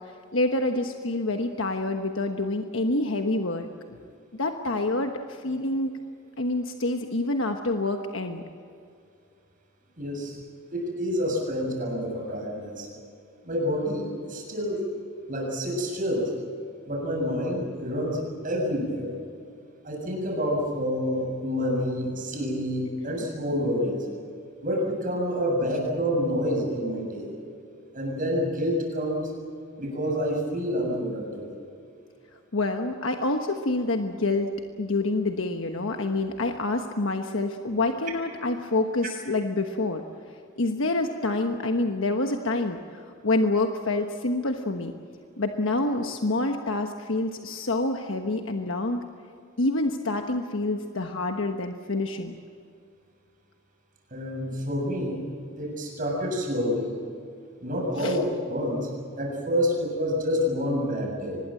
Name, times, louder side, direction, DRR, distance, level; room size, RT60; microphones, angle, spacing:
voice 1, 0.3-3.7 4.3-5.9 6.4-8.4 23.0-23.1 32.5-34.5 34.8-40.0 40.6-44.9 45.4-49.0 49.6-52.3 58.0-58.2, left 2 dB, 70° left, 5 dB, 1.2 m, -27 dB
voice 2, 10.0-10.4 10.7-12.9 13.5-14.9 15.3-16.3 16.9-19.1 19.8-24.0 24.6-27.3 27.9-29.3 29.8-31.5 54.1-55.2 55.6-56.9 57.6-58.9 59.2-61.4, equal, 40° right, 0 dB, 7.1 m, -28 dB
25.0 x 20.5 x 7.8 m, 2.5 s
head